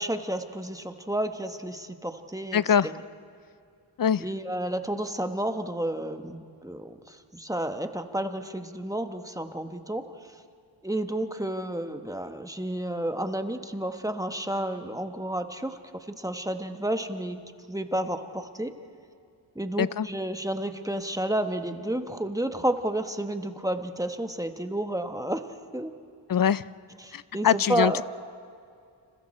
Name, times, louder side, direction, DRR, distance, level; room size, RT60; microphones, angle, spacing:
voice 1, 0.0-2.9 4.2-10.1 10.8-15.8 16.1-17.4 17.7-18.7 19.5-25.5 25.7-25.9 27.0-28.0, right 1 dB, 5° right, 6 dB, 1.2 m, -31 dB
voice 2, 2.5-2.9 4.0-4.2 19.8-20.1 26.3-26.6 27.1-28.0, left 8 dB, 45° left, 18 dB, 0.5 m, -23 dB
29.5 x 28.0 x 4.3 m, 2.4 s
wide cardioid pair, 110°, 48 cm